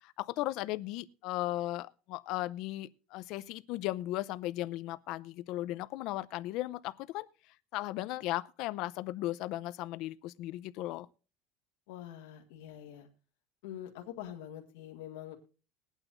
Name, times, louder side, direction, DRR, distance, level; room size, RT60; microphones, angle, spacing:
voice 1, 0.0-7.3 7.7-11.1, left 16 dB, 50° left, 0.5 m, -36 dB
voice 2, 11.9-13.1 13.6-15.4, left 11 dB, 90° left, 1.8 m, -45 dB
21.5 x 9.0 x 2.5 m
cardioid pair, 165°, 0 cm